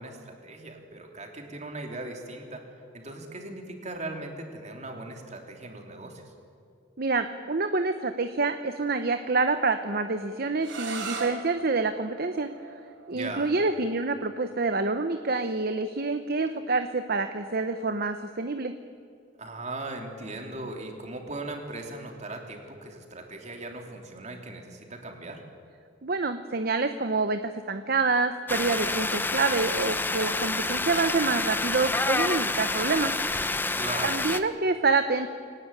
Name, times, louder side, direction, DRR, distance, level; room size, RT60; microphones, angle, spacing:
voice 1, 0.0-2.6 2.9-6.3 13.1-13.5 19.4-25.4 33.8-34.2, right 2 dB, 35° right, 2 dB, 3.2 m, -38 dB
voice 2, 7.0-12.5 13.1-18.7 26.0-33.1 34.0-35.3, right 3 dB, 50° right, 8 dB, 0.9 m, -27 dB
sound 1, 10.6-16.3, right 4 dB, 70° right, 3.5 m, -41 dB
sound 2, 28.5-34.4, left 2 dB, 10° left, 0.8 m, -28 dB
24.0 x 18.5 x 9.1 m, 2.3 s
head